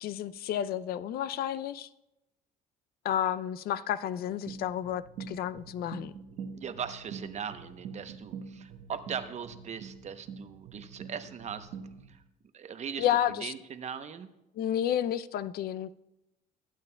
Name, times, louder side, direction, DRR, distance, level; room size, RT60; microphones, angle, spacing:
voice 1, 0.0-1.9 3.0-6.1 13.0-13.5 14.6-15.9, left 10 dB, 65° left, 0.4 m, -31 dB
sound 1, 4.5-12.2, right 6 dB, 85° right, 1.2 m, -45 dB
voice 2, 6.5-11.7 12.1-12.2 12.5-13.1 13.4-14.3, right 7 dB, 45° right, 0.8 m, -39 dB
21.0 x 9.0 x 2.2 m
cardioid pair, 110°, 17 cm